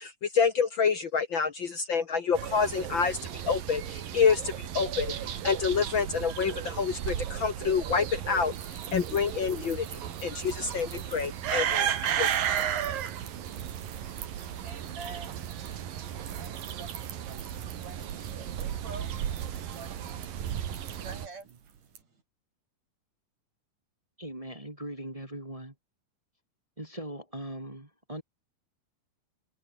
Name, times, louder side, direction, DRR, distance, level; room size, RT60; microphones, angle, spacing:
voice 1, 0.0-3.2 3.5-5.1 5.4-12.3, left 6 dB, 55° left, 1.3 m, -28 dB
sound 1, 2.3-21.3, right 10 dB, 85° right, 3.8 m, -34 dB
sound 2, 8.5-22.0, right 8 dB, 70° right, 4.4 m, -51 dB
voice 2, 13.8-22.2, right 4 dB, 50° right, 7.2 m, -49 dB
voice 3, 24.2-25.7 26.8-28.2, right 1 dB, 10° right, 1.8 m, -40 dB
omnidirectional pair, 3.9 m